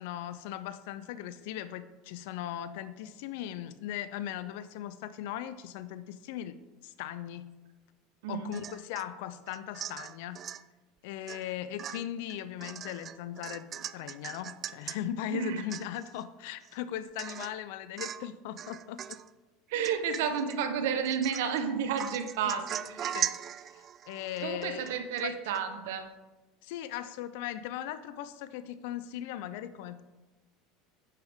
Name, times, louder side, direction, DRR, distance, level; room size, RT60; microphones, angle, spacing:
voice 1, 0.0-7.5 8.3-10.5 11.0-19.0 22.4-22.6 23.1-23.3 23.7-25.0 25.2-25.4 26.6-30.0, left 11 dB, 75° left, 14 dB, 0.4 m, -38 dB
Domestic sounds home sounds / Chink clink / Drip, 8.5-9.1 9.5-10.6 11.3-11.5 11.8-15.0 15.4-15.5 15.7-16.2 16.6-16.7 17.2-17.6 18.0-18.3 18.6-19.3 19.8-20.6 21.0-21.6 22.0-25.3 25.5-25.6, right 9 dB, 40° right, 0.3 m, -39 dB
voice 2, 15.3-15.6 19.7-23.1 24.4-26.0, right 7 dB, 80° right, 8 dB, 1.0 m, -31 dB
9.2 x 7.1 x 3.6 m, 1.1 s
supercardioid pair, 100°, 0 cm